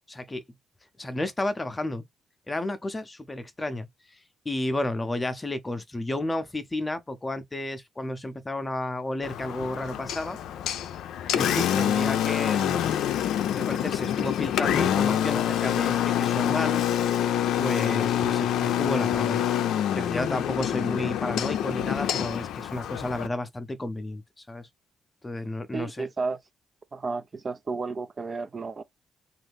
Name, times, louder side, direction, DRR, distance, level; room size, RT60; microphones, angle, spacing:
voice 1, 0.1-0.4 1.0-2.0 2.5-3.9 4.4-10.4 11.3-12.9 13.5-16.8 17.6-19.5 19.9-24.7 25.2-26.1, left 1 dB, 20° left, 0.6 m, -32 dB
Engine, 9.2-23.3, left 10 dB, 80° left, 0.4 m, -26 dB
voice 2, 25.7-26.4 26.9-28.8, right 4 dB, 35° right, 0.4 m, -32 dB
2.6 x 2.4 x 3.4 m
cardioid pair, 90°, 0 cm